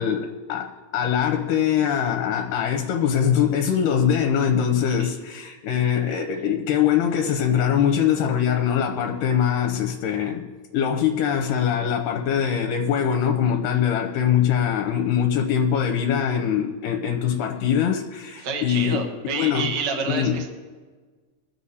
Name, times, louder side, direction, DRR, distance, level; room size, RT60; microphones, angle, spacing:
voice 1, 0.0-19.1 19.4-19.7 20.1-20.4, left 8 dB, 75° left, 2.4 m, -23 dB
voice 2, 18.4-20.5, right 5 dB, 45° right, 1.4 m, -29 dB
22.0 x 7.5 x 4.2 m
omnidirectional pair, 3.9 m